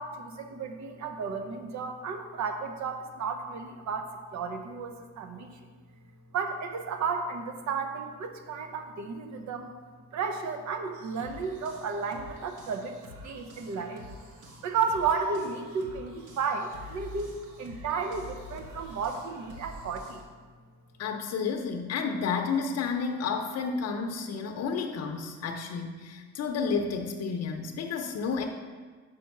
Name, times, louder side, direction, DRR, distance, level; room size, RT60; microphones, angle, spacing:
voice 1, 0.0-5.6 6.3-9.7 10.1-12.9 13.2-14.1 14.6-17.3 17.6-20.2, right 5 dB, 65° right, 6 dB, 0.9 m, -33 dB
sound 1, 10.9-20.2, left 1 dB, 85° right, 1.2 m, -48 dB
voice 2, 21.0-28.5, left 5 dB, 55° left, 4 dB, 0.6 m, -31 dB
5.2 x 4.9 x 5.9 m, 1.5 s
cardioid pair, 90°, 30 cm